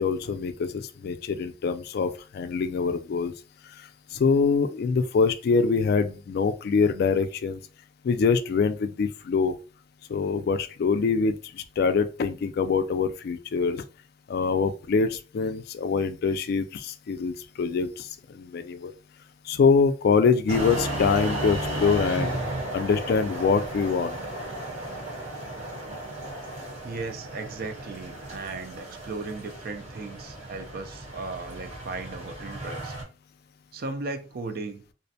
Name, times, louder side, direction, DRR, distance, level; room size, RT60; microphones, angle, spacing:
voice 1, 0.0-3.3 4.1-7.6 8.0-9.6 10.1-13.8 14.3-18.9 19.5-22.4 22.7-24.2, left 5 dB, 55° left, 0.3 m, -24 dB
sound 1, 20.5-33.0, right 1 dB, 35° right, 1.1 m, -34 dB
voice 2, 26.8-32.9 33.7-34.8, right 3 dB, 55° right, 0.4 m, -36 dB
2.5 x 2.1 x 2.6 m
head